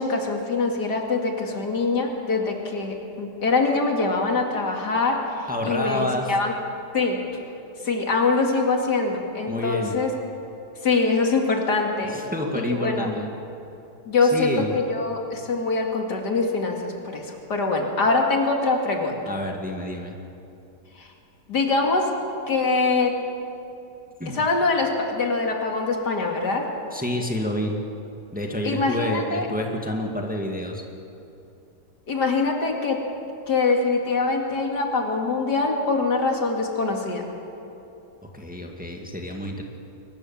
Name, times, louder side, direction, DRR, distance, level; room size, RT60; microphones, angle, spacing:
voice 1, 0.0-6.5 6.9-7.2 7.8-10.1 10.8-12.2 12.5-13.1 14.1-19.2 21.0-21.1 21.5-22.1 22.5-23.2 24.3-26.7 28.6-29.5 32.1-33.0 33.5-37.2, left 3 dB, 80° left, 2 dB, 3.0 m, -23 dB
voice 2, 5.5-6.3 9.5-10.0 12.1-13.3 14.2-14.7 19.3-20.2 24.2-24.5 26.9-27.8 28.3-30.8 38.3-39.6, left 1 dB, 5° right, 1 dB, 1.9 m, -28 dB
23.0 x 20.0 x 7.3 m, 2.8 s
omnidirectional pair, 1.8 m